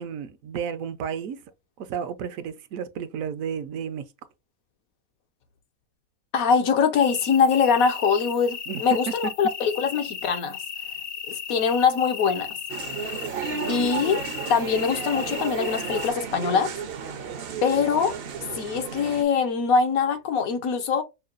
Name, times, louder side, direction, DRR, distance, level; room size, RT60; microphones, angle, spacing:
voice 1, 0.0-1.4 1.8-4.0 8.7-8.8 9.2-9.3, right 7 dB, 75° right, 1.0 m, -32 dB
voice 2, 6.3-10.6 11.3-12.6 13.7-14.2 14.5-16.7 17.6-18.1 18.5-21.0, left 6 dB, 75° left, 1.2 m, -23 dB
sound 1, 7.0-16.1, left 7 dB, 60° left, 0.6 m, -36 dB
sound 2, 12.7-19.2, right 6 dB, 55° right, 0.7 m, -33 dB
5.6 x 2.2 x 2.4 m
omnidirectional pair, 1.5 m